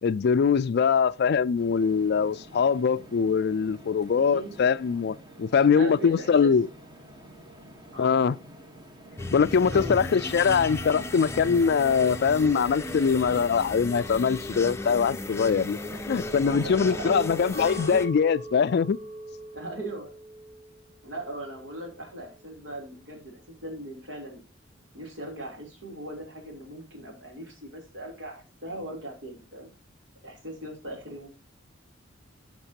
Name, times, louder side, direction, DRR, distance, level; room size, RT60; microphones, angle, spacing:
voice 1, 0.0-6.7 8.0-8.4 9.3-15.8 16.1-19.0, left 6 dB, 55° left, 0.4 m, -23 dB
Indust blower laughing crackles, 1.5-13.5, right 1 dB, 25° right, 1.2 m, -49 dB
voice 2, 4.1-4.6 5.6-6.5 7.9-8.4 9.6-10.1 15.8-16.0 16.3-17.3 19.5-20.1 21.0-24.4 24.9-29.7 30.2-31.3, right 1 dB, 70° right, 3.3 m, -39 dB
sound 1, 9.2-18.1, left 2 dB, 15° left, 0.6 m, -35 dB
Chink clink, 17.5-21.9 22.3-22.9, right 1 dB, 40° right, 5.7 m, -43 dB
15.5 x 6.0 x 2.8 m
head